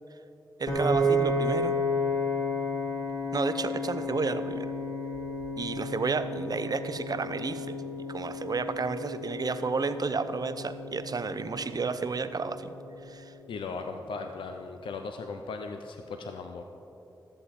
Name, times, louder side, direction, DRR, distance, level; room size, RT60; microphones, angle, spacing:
voice 1, 0.6-1.8 3.3-4.7 5.6-7.8 8.1-12.7 13.1-13.2, right 4 dB, 50° right, 11 dB, 0.6 m, -31 dB
Piano, 0.7-12.9, left 1 dB, 45° left, 2.2 m, -32 dB
voice 2, 13.5-16.6, left 4 dB, 85° left, 5 dB, 0.5 m, -37 dB
13.5 x 7.7 x 4.2 m, 2.9 s
cardioid pair, 40°, 8 cm